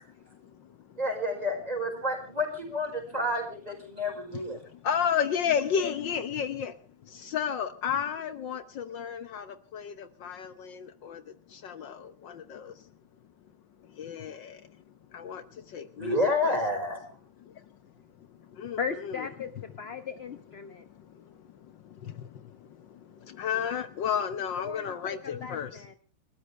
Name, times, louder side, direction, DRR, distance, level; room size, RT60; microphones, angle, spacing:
voice 1, 0.3-1.0 4.7-6.8 7.0-12.9 13.8-14.8 15.1-16.2 16.4-16.6 17.4-17.7 18.2-19.3 20.6-25.9, left 8 dB, 65° left, 11 dB, 1.6 m, -33 dB
voice 2, 1.0-4.6 16.0-17.1, left 1 dB, 20° right, 3 dB, 5.0 m, -29 dB
voice 3, 18.8-20.9 24.6-25.9, left 6 dB, 40° left, 9 dB, 0.9 m, -37 dB
29.5 x 13.5 x 3.3 m, 0.39 s
omnidirectional pair, 2.2 m